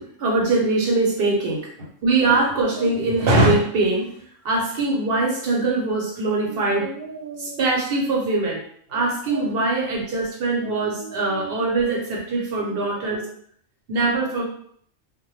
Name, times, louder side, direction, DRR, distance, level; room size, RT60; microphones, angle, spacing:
voice 1, 0.2-4.1 4.4-8.6 8.9-13.3 13.9-14.4, right 2 dB, 55° right, -2 dB, 0.8 m, -22 dB
2.1 x 2.1 x 3.0 m, 0.63 s
omnidirectional pair, 1.3 m